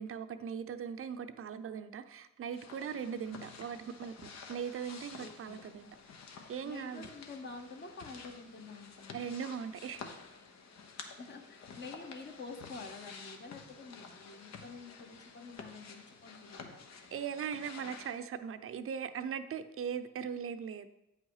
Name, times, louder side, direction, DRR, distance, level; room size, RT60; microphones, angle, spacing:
voice 1, 0.0-5.9 6.5-7.1 9.1-10.0 17.1-20.9, right 7 dB, 45° right, 10 dB, 0.7 m, -39 dB
sound 1, 2.5-18.2, left 5 dB, 65° left, 1.1 m, -51 dB
voice 2, 3.2-3.6 5.2-5.8 6.6-9.3 11.2-16.9, left 4 dB, 35° left, 5 dB, 1.1 m, -48 dB
8.7 x 5.6 x 4.8 m, 0.90 s
cardioid pair, 90°, 30 cm